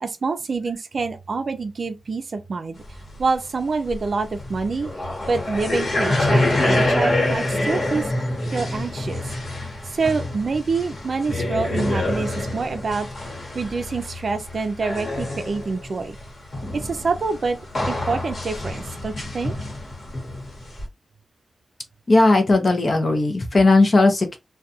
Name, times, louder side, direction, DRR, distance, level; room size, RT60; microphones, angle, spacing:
voice 1, 0.0-2.8 3.2-4.9 5.3-8.1 8.5-9.2 9.9-13.1 13.5-16.2 16.7-17.6 17.9-19.5, right 4 dB, 60° right, 0.4 m, -26 dB
sound 1, 2.9-3.0 3.2-3.3 3.9-16.2 16.5-20.8, left 1 dB, 60° left, 1.1 m, -26 dB
voice 2, 22.1-24.4, left 2 dB, 40° left, 0.6 m, -17 dB
2.3 x 2.2 x 2.7 m
wide cardioid pair, 105°, 0 cm